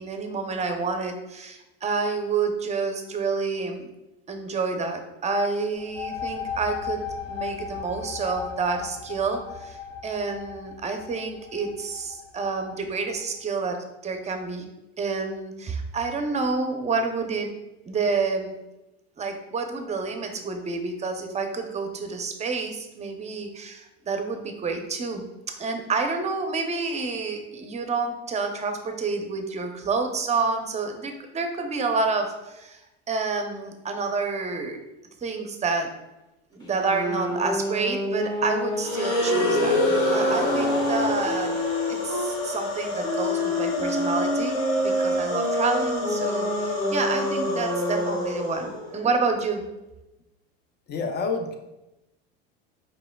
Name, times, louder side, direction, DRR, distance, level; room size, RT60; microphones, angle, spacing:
voice 1, 0.0-3.9 4.3-13.8 14.0-14.7 15.0-17.5 17.9-18.6 19.2-25.2 25.6-32.8 33.1-34.8 35.2-35.9 36.5-39.8 40.1-41.6 41.9-49.6, right 4 dB, 25° right, 5 dB, 0.6 m, -29 dB
sound 1, 5.7-13.2, left 6 dB, 55° left, 1.0 m, -37 dB
sound 2, 36.6-42.3 43.0-48.4, equal, 15° left, 1.5 m, -28 dB
sound 3, 38.8-49.0, left 1 dB, 75° left, 1.4 m, -28 dB
voice 2, 50.9-51.6, left 4 dB, 35° left, 5 dB, 0.6 m, -28 dB
4.8 x 3.2 x 2.3 m, 0.96 s
supercardioid pair, 90°, 30 cm